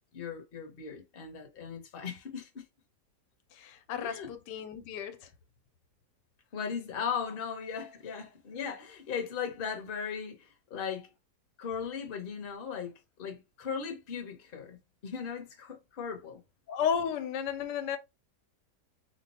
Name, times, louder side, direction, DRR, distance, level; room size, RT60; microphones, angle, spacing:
voice 1, 0.1-2.6 4.0-4.3 6.5-11.1 11.6-16.4, left 7 dB, 40° left, 0.9 m, -38 dB
voice 2, 3.5-5.3 16.7-18.0, left 7 dB, 90° left, 1.2 m, -33 dB
3.0 x 2.1 x 4.1 m
omnidirectional pair, 1.8 m